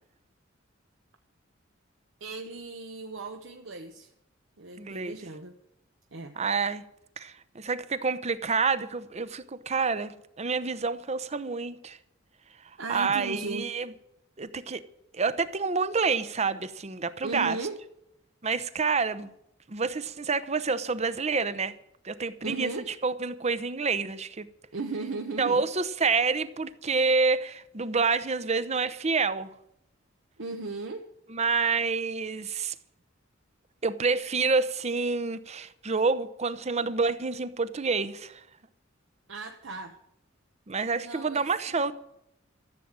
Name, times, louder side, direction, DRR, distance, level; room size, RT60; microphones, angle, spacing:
voice 1, 2.2-4.1 4.6-5.6 6.1-6.4 12.8-13.7 17.2-17.8 22.4-22.9 24.7-25.6 30.4-31.1 39.3-40.0 40.9-41.4 41.7-41.9, right 3 dB, 75° right, 1.0 m, -36 dB
voice 2, 4.8-5.1 6.4-6.8 7.2-12.0 12.9-13.9 14.4-14.8 15.1-17.6 18.4-19.3 19.7-21.7 22.0-22.7 23.0-24.5 25.4-29.5 31.3-32.7 33.8-38.4 40.7-41.9, right 4 dB, 35° right, 0.8 m, -28 dB
14.0 x 7.6 x 8.8 m
head